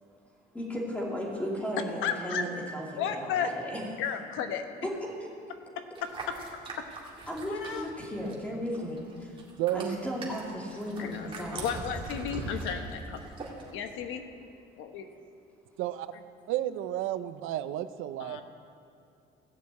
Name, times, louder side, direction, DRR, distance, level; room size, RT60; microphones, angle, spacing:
voice 1, 0.5-3.8 4.8-5.3 7.3-9.4 9.7-11.7 13.2-13.3, equal, 5° left, -3 dB, 2.5 m, -35 dB
voice 2, 2.0-2.4 3.0-3.6 4.0-4.7 5.8-6.3 7.5-7.9 11.0-13.2 13.7-14.2 14.8-15.0 18.2-18.4, left 7 dB, 80° left, 7 dB, 1.1 m, -33 dB
sound 1, 5.9-8.5 8.7-13.7, right 3 dB, 25° right, 2.1 m, -41 dB
voice 3, 9.6-10.0 15.8-16.1 16.5-18.4, right 13 dB, 80° right, 12 dB, 0.6 m, -31 dB
15.5 x 6.6 x 8.3 m, 2.5 s
cardioid pair, 155°, 20 cm